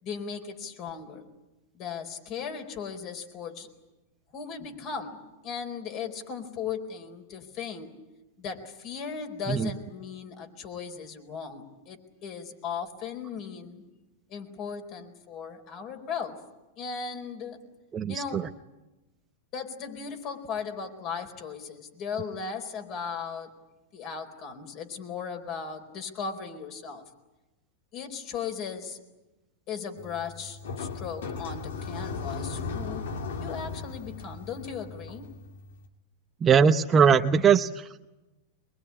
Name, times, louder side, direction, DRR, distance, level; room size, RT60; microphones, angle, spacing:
voice 1, 0.0-1.3 1.7-3.7 4.3-7.9 8.4-13.8 14.3-16.4 16.8-17.6 18.1-18.5 19.5-23.6 23.9-27.0 27.9-29.0 29.7-33.0 33.4-35.3, left 6 dB, 45° left, 4 dB, 4.4 m, -37 dB
voice 2, 17.9-18.5 36.4-38.1, right 6 dB, 25° right, 7 dB, 0.8 m, -21 dB
sound 1, 30.0-35.9, left 4 dB, 80° left, 2.6 m, -37 dB
23.0 x 22.5 x 9.9 m, 1.1 s
hypercardioid pair, 125°, 0 cm